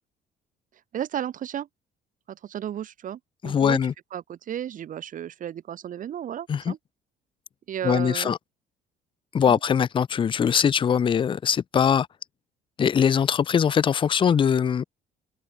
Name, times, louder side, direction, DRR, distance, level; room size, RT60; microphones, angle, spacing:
voice 1, 0.9-1.7 2.3-3.8 4.1-6.8 7.7-8.3 9.5-9.6, right 10 dB, 50° right, 1.5 m, -33 dB
voice 2, 3.4-3.9 6.5-6.7 7.8-8.4 9.3-12.1 12.8-14.8, left 7 dB, 30° left, 0.5 m, -22 dB
cardioid pair, 110°, 17 cm